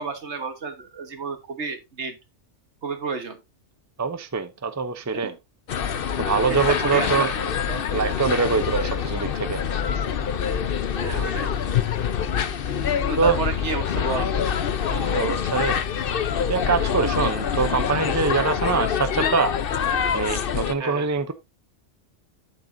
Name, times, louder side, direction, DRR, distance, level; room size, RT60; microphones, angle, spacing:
voice 1, 0.0-2.2 2.8-3.4 5.1-5.4 6.5-7.8 10.9-11.5 13.1-14.3 15.1-15.3 20.8-21.1, right 4 dB, 70° right, 1.7 m, -31 dB
voice 2, 4.0-5.3 6.2-7.3 7.9-9.6 13.2-13.4 14.9-15.8 16.5-19.5 20.1-21.3, right 5 dB, 20° right, 0.6 m, -24 dB
sound 1, 5.7-20.7, left 8 dB, 55° left, 0.9 m, -25 dB
8.8 x 8.3 x 2.7 m
omnidirectional pair, 1.2 m